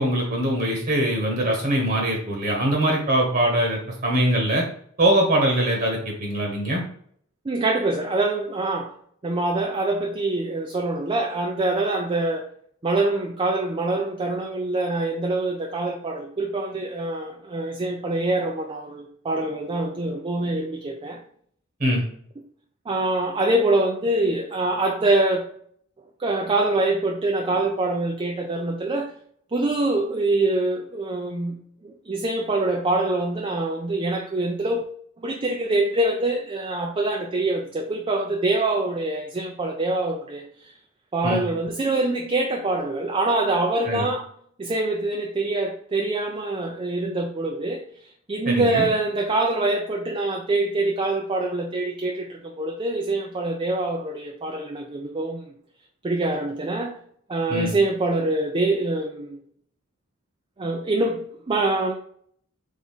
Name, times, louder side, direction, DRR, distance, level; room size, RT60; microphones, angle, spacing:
voice 1, 0.0-4.6 5.0-6.8 21.8-22.0 41.2-41.4 43.8-44.1 48.4-48.9 57.5-57.7, right 1 dB, 45° right, 1.1 m, -22 dB
voice 2, 7.4-8.9 9.2-12.5 12.8-21.2 22.9-25.5 26.2-29.2 29.5-34.8 35.2-40.7 41.1-44.3 44.6-47.8 48.3-55.5 56.0-57.0 57.3-59.4 60.6-61.9, right 2 dB, 25° right, 0.4 m, -25 dB
4.0 x 3.5 x 3.6 m
head